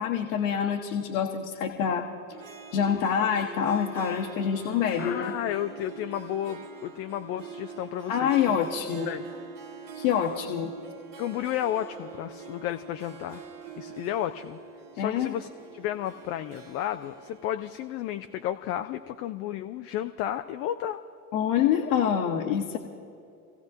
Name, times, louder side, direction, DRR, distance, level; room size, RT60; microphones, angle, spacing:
voice 1, 0.0-2.1 2.7-5.3 8.1-9.1 10.0-10.7 15.0-15.3 21.3-22.8, left 8 dB, 60° left, 0 dB, 1.1 m, -26 dB
Harp, 2.3-18.8, right 5 dB, 45° right, 1.3 m, -44 dB
voice 2, 5.0-8.6 9.1-9.3 11.2-13.4 13.8-14.6 14.9-15.5 15.7-21.0, left 11 dB, 35° left, 8 dB, 0.4 m, -32 dB
27.0 x 16.0 x 2.6 m, 2.6 s
figure-of-eight pair, 70°, 46 cm